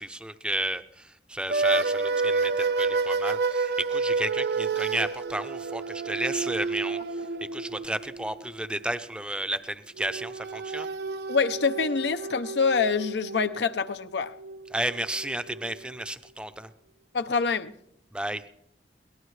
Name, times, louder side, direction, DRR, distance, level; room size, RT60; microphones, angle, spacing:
voice 1, 0.0-7.3 7.5-10.9 14.7-16.7 18.1-18.4, right 1 dB, 5° right, 0.5 m, -32 dB
sound 1, 1.5-8.8 10.0-16.1, right 4 dB, 70° right, 0.6 m, -30 dB
voice 2, 11.3-14.3 17.1-17.7, left 5 dB, 75° left, 0.6 m, -26 dB
22.0 x 18.5 x 3.2 m
head